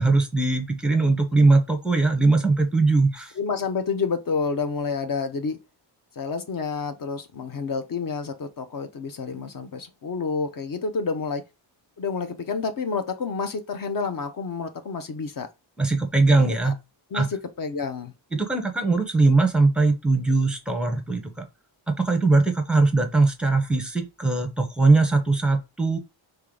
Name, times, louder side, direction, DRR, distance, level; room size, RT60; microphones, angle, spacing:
voice 1, 0.0-3.3 15.8-16.7 17.1-17.3 18.3-21.3 22.0-26.0, right 3 dB, ahead, 0.6 m, -20 dB
voice 2, 3.3-5.6 6.2-11.4 12.0-15.5 16.2-16.3 16.6-16.7 17.1-18.1, left 5 dB, 45° left, 0.7 m, -29 dB
3.6 x 3.3 x 3.7 m
wide cardioid pair, 175°, 47 cm